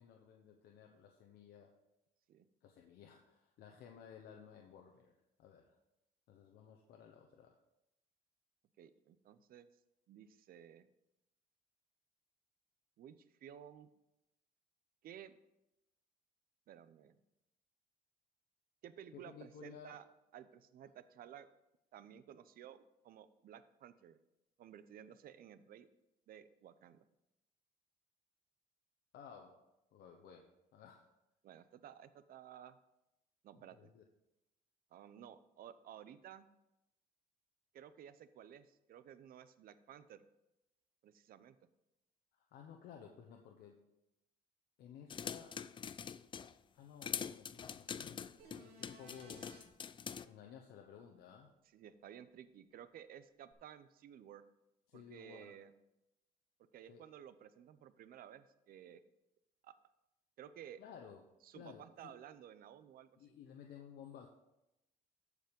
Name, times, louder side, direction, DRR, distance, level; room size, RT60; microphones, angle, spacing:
voice 1, 0.0-1.8 2.6-5.8 6.3-7.6 19.1-20.0 29.1-31.1 33.7-34.0 42.3-43.8 44.8-45.6 46.7-49.5 50.2-51.5 54.9-55.6 56.9-57.0 60.8-61.2 61.5-62.1 63.2-64.3, left 7 dB, 70° left, 3 dB, 1.1 m, -56 dB
voice 2, 8.8-9.7 10.1-10.9 13.0-13.1 13.4-13.9 15.0-15.4 16.7-17.2 18.8-20.0 20.3-21.5 21.9-24.2 24.6-25.9 26.3-27.0 31.4-32.8 33.4-33.9 34.9-36.5 37.7-40.2 41.0-41.6 51.7-54.4 54.9-55.7 56.7-59.0 59.6-59.7 60.4-60.8 61.4-63.1, right 9 dB, 60° right, 13 dB, 0.7 m, -55 dB
sound 1, 45.1-46.5 47.0-50.2, left 7 dB, 30° left, 0.4 m, -44 dB
sound 2, 48.4-49.6 53.5-53.6, right 2 dB, 75° right, 2.5 m, -59 dB
14.0 x 5.1 x 5.3 m, 0.91 s
cardioid pair, 110°, 17 cm